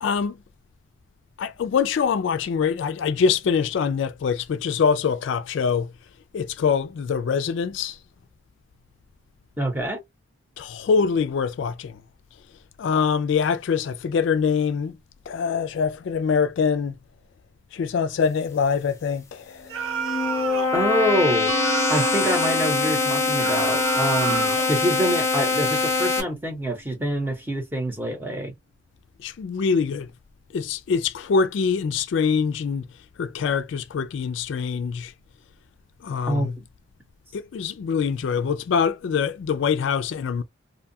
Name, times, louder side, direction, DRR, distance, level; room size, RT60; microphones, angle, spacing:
voice 1, 0.0-0.4 1.4-5.9 6.3-8.0 10.6-12.0 12.8-15.0 15.3-17.0 17.7-20.0 24.3-24.4 29.2-30.1 30.5-32.9 33.2-35.1 36.0-36.6 37.3-40.4, left 6 dB, 60° left, 0.3 m, -24 dB
voice 2, 9.6-10.0 20.7-21.5 21.9-28.5 36.3-36.5, equal, 10° right, 0.8 m, -26 dB
sound 1, 19.7-26.2, left 4 dB, 15° left, 0.6 m, -23 dB
sound 2, 19.7-20.8 21.5-22.6 23.4-24.7, right 5 dB, 75° right, 0.7 m, -30 dB
Mallet percussion, 21.5-26.9, right 4 dB, 45° right, 1.0 m, -37 dB
2.6 x 2.3 x 2.6 m
head